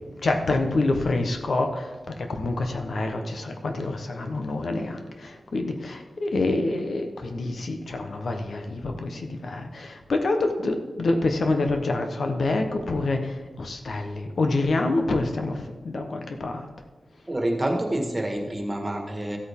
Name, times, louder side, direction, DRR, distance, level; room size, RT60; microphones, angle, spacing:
voice 1, 0.2-16.7, left 2 dB, 70° left, 5 dB, 1.0 m, -27 dB
voice 2, 17.3-19.4, right 1 dB, 25° right, 2 dB, 1.6 m, -27 dB
14.0 x 8.5 x 3.6 m, 1.3 s
wide cardioid pair, 100°, 0 cm